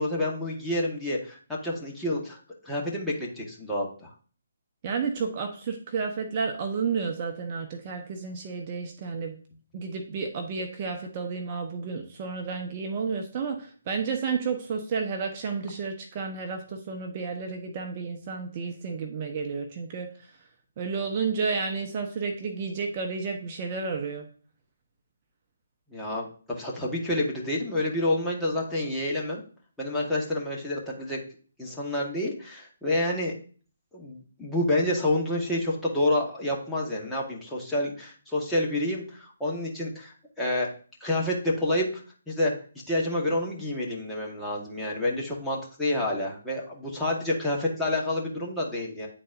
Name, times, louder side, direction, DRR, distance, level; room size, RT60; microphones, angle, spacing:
voice 1, 0.0-2.4 2.6-4.1 25.9-29.4 29.8-31.2 31.6-33.3 33.9-40.7 41.0-42.5 42.9-49.1, left 1 dB, 5° left, -5 dB, 1.3 m, -28 dB
voice 2, 4.8-9.4 9.7-20.3 20.8-24.3, right 5 dB, 35° right, 3 dB, 0.9 m, -31 dB
10.0 x 4.0 x 2.5 m, 0.42 s
figure-of-eight pair, 145°, 0 cm